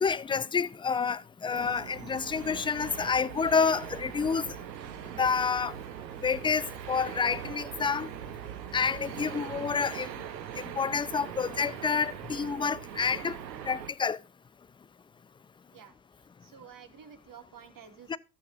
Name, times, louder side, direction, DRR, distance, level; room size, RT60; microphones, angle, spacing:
voice 1, 0.0-4.6 5.2-5.7 6.2-8.1 8.7-10.1 10.6-13.4 13.6-14.2 18.1-18.2, left 5 dB, 10° left, 0.4 m, -29 dB
sound 1, 1.5-13.9, right 9 dB, 85° right, 1.2 m, -41 dB
voice 2, 16.4-18.2, right 7 dB, 40° right, 2.5 m, -50 dB
14.5 x 7.2 x 2.6 m
hypercardioid pair, 70°, 49 cm